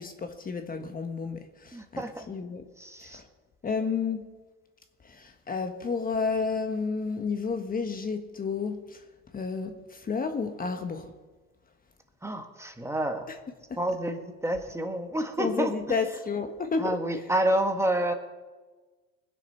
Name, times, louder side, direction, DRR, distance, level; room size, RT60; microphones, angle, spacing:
voice 1, 0.0-2.6 3.0-3.2 3.6-4.3 5.0-9.0 9.3-11.1 13.3-13.4 13.7-13.8 15.4-17.2, left 5 dB, 25° left, 1.2 m, -31 dB
voice 2, 1.7-2.3 2.8-3.2 12.2-13.3 13.8-15.7 16.8-18.1, right 1 dB, 10° right, 1.4 m, -29 dB
20.5 x 7.6 x 5.6 m
supercardioid pair, 95°, 32 cm